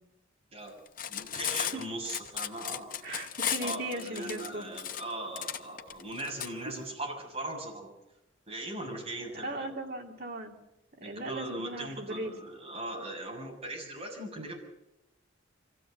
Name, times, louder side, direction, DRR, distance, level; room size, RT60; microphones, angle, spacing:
Cutlery silverware, 0.9-6.5, left 9 dB, 45° left, 0.9 m, -35 dB
voice 1, 1.1-3.0 3.6-7.9 8.5-9.7 11.0-14.6, right 1 dB, 30° right, -1 dB, 7.0 m, -39 dB
voice 2, 3.0-4.6 9.4-10.5 11.0-12.3, right 1 dB, 50° right, 1 dB, 3.3 m, -37 dB
25.0 x 15.5 x 7.9 m, 0.90 s
head